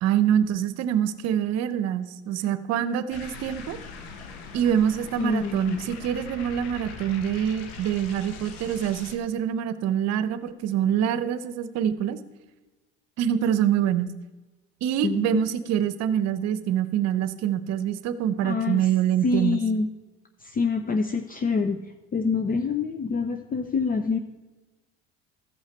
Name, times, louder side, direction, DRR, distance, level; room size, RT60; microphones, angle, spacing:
voice 1, 0.0-3.8 4.5-12.2 13.2-14.1 14.8-19.6, right 9 dB, 60° right, 13 dB, 0.9 m, -25 dB
sound 1, 3.1-9.2, left 4 dB, 80° left, 1.3 m, -41 dB
voice 2, 5.2-5.8 15.0-15.4 18.4-18.9 19.2-19.9 20.4-21.8 22.1-24.2, left 4 dB, 30° left, 6 dB, 0.7 m, -26 dB
14.5 x 5.7 x 4.5 m, 1.2 s
hypercardioid pair, 80°, 30 cm